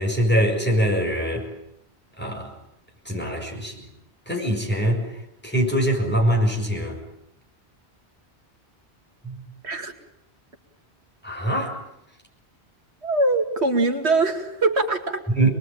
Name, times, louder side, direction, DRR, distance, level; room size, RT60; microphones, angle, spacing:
voice 1, 0.0-1.5 2.2-2.5 3.1-3.8 4.3-5.0 5.4-7.0 9.2-9.4 11.2-11.8 15.4-15.5, right 1 dB, 10° left, 0 dB, 7.0 m, -23 dB
voice 2, 13.0-15.2, right 2 dB, 75° right, 5 dB, 2.5 m, -22 dB
27.0 x 21.5 x 9.1 m, 0.80 s
omnidirectional pair, 1.1 m